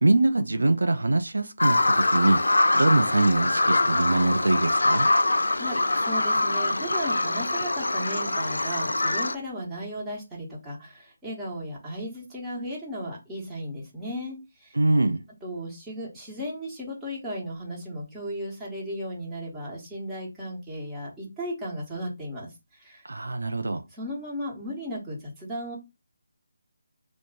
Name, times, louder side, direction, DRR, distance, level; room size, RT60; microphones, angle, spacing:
voice 1, 0.0-2.4 2.7-5.1 14.8-15.2 23.0-23.8, right 2 dB, 75° right, 0.4 m, -23 dB
Bird vocalization bird call bird song, 1.6-9.3, left 2 dB, 80° left, 0.3 m, -24 dB
voice 2, 5.5-14.7 15.4-23.1 23.9-25.8, equal, 10° right, 1.2 m, -35 dB
3.1 x 2.1 x 4.0 m
figure-of-eight pair, 155°, 0 cm